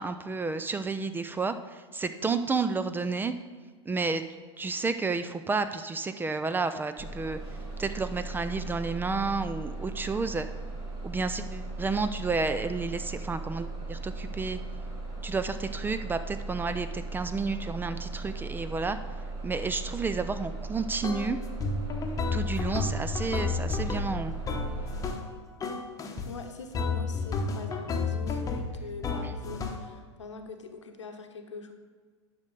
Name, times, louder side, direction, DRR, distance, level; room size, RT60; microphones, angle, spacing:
voice 1, 0.0-3.3 3.9-4.2 4.6-7.4 7.8-10.5 11.0-14.6 15.2-19.0 19.4-21.4 22.3-24.3, right 4 dB, 15° right, 11 dB, 0.4 m, -31 dB
Bus, 7.0-25.1, right 3 dB, 35° right, 2.6 m, -38 dB
sound 1, 21.0-21.3 21.6-25.3 25.6-26.3 26.7-29.9, left 4 dB, 25° left, 1.1 m, -32 dB
voice 2, 26.2-31.7, left 4 dB, 80° left, 6 dB, 0.9 m, -43 dB
10.5 x 6.3 x 3.8 m, 1.5 s
hypercardioid pair, 90°, 15 cm